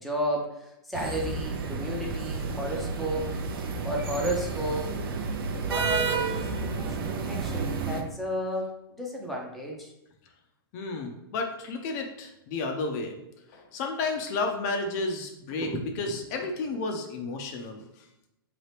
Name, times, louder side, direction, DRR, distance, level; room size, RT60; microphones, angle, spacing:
voice 1, 0.0-3.3 3.8-4.9 5.6-9.9 15.6-15.8, equal, ahead, -2 dB, 0.6 m, -32 dB
sound 1, 0.9-8.0, right 4 dB, 70° right, 0.6 m, -31 dB
voice 2, 10.7-13.2 13.5-15.7 16.0-17.8, left 3 dB, 45° left, 4 dB, 0.6 m, -32 dB
3.8 x 2.9 x 3.2 m, 0.88 s
hypercardioid pair, 135°, 12 cm